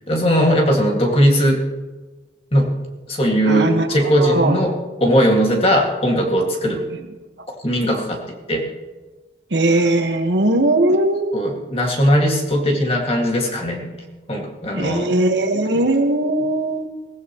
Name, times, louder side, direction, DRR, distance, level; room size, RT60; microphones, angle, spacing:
voice 1, 0.1-1.6 2.5-2.7 3.1-6.8 7.6-8.2 8.5-8.7 11.3-13.9 14.3-15.1, equal, 30° left, 0 dB, 2.1 m, -18 dB
voice 2, 3.4-3.9 4.2-4.6 9.5-11.4 14.7-16.9, right 1 dB, 75° right, 5 dB, 1.5 m, -19 dB
22.5 x 16.0 x 3.1 m, 1.3 s
head